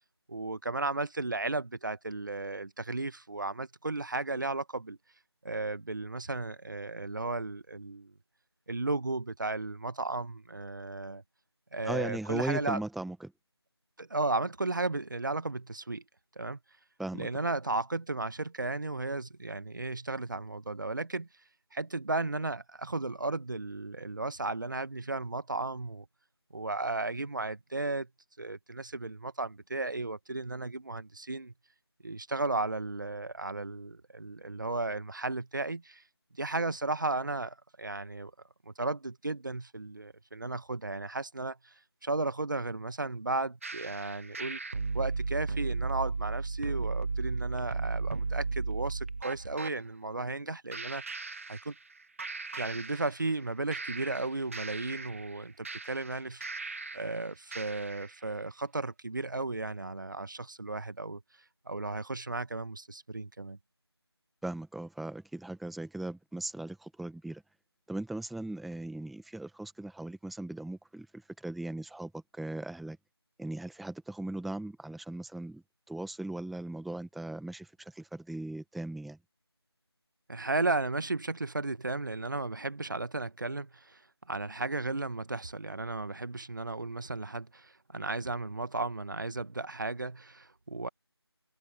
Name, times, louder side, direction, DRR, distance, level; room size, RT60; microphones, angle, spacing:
voice 1, 0.3-5.0 5.4-8.1 8.7-11.2 11.7-12.8 14.0-16.0 16.3-16.6 17.2-21.3 21.7-26.0 26.5-28.1 28.4-31.5 32.0-36.0 36.4-38.3 38.6-41.7 42.0-44.6 44.9-51.0 51.5-51.7 52.5-61.2 61.6-63.6 80.3-84.0 84.3-90.9, right 2 dB, 45° right, 1.6 m, -34 dB
voice 2, 11.8-13.3 17.0-17.3 64.4-67.4 67.9-73.0 73.4-79.2, right 2 dB, ahead, 1.3 m, -38 dB
sound 1, 43.6-49.7 50.7-51.9 52.2-53.4 53.7-57.1 57.5-58.1, right 3 dB, 30° right, 1.6 m, -35 dB
figure-of-eight pair, 165°, 14 cm